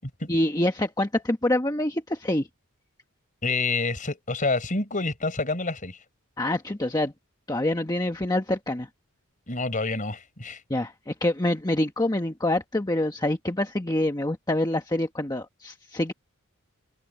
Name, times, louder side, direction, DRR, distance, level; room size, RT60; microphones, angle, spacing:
voice 1, 0.3-2.5 6.4-7.1 7.5-8.9 10.7-16.1, left 1 dB, 15° left, 1.3 m, -26 dB
voice 2, 3.4-6.0 9.5-10.6, left 3 dB, 35° left, 4.9 m, -28 dB
head